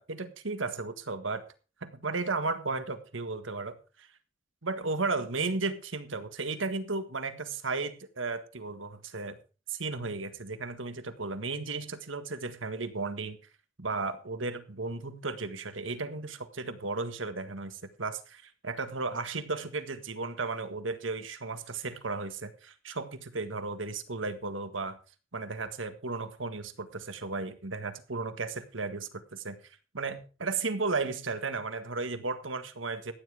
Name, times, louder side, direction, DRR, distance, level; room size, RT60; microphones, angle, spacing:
voice 1, 0.0-1.4 1.8-4.1 4.6-9.4 9.7-13.4 13.8-25.0 25.3-29.6 29.9-33.1, right 3 dB, 85° right, 10 dB, 1.7 m, -34 dB
15.0 x 10.0 x 4.9 m, 0.35 s
head